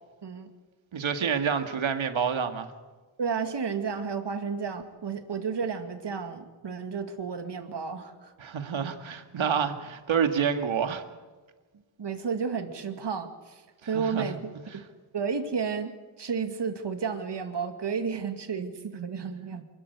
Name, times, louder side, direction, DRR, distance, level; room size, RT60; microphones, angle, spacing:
voice 1, 0.9-2.7 8.4-11.0 13.9-14.4 14.7-14.8, right 7 dB, 80° right, 7 dB, 2.1 m, -28 dB
voice 2, 3.2-8.3 12.0-13.6 13.9-14.4 14.7-14.8 15.1-19.6, right 6 dB, 60° right, 7 dB, 2.4 m, -32 dB
27.0 x 13.5 x 8.3 m, 1.3 s
wide cardioid pair, 120°, 46 cm